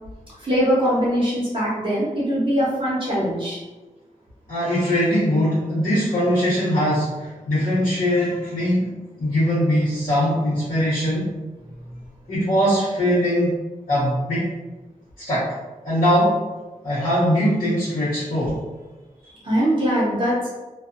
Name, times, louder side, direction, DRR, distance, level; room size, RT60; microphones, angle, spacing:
voice 1, 0.4-3.6 19.3-20.3, equal, 35° right, -8 dB, 0.8 m, -22 dB
voice 2, 4.5-11.4 12.3-13.6 13.9-14.5 15.2-15.6 15.8-16.4 16.8-18.6, equal, 80° left, -14 dB, 1.1 m, -21 dB
2.6 x 2.3 x 2.5 m, 1.2 s
wide cardioid pair, 115°, 14 cm